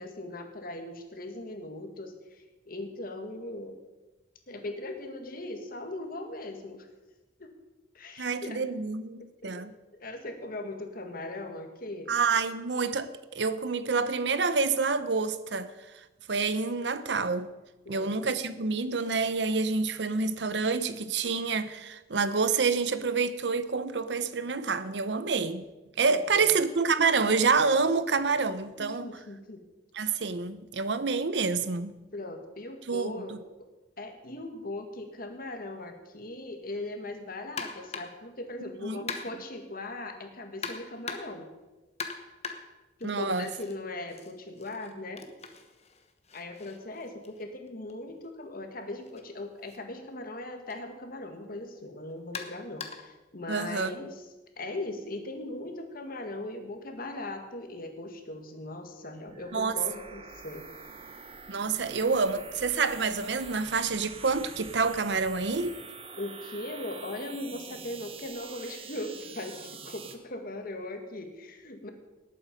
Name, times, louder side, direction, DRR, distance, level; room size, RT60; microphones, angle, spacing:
voice 1, 0.0-3.8 4.5-6.9 7.4-7.5 7.9-8.6 9.4-9.6 9.9-12.1 17.9-18.2 26.0-26.4 28.8-29.6 32.1-33.4 34.0-41.5 43.0-45.3 46.3-54.2 54.6-60.7 66.2-71.9, left 2 dB, 55° left, 1.8 m, -39 dB
voice 2, 8.2-9.7 12.1-15.7 16.3-17.5 17.9-25.6 26.0-29.1 29.9-32.0 32.9-33.4 38.8-39.0 43.0-43.4 53.5-53.9 59.5-59.7 61.5-65.7, right 4 dB, 75° right, 0.8 m, -28 dB
sound 1, 37.6-38.3 39.1-39.6 40.6-41.5 42.0-43.8 44.1-48.0 49.0-49.2 49.7-49.8 50.7-50.8 52.3-53.2, left 5 dB, 40° left, 1.2 m, -41 dB
sound 2, 59.2-70.2, right 5 dB, 35° right, 1.2 m, -45 dB
18.5 x 8.6 x 5.2 m
head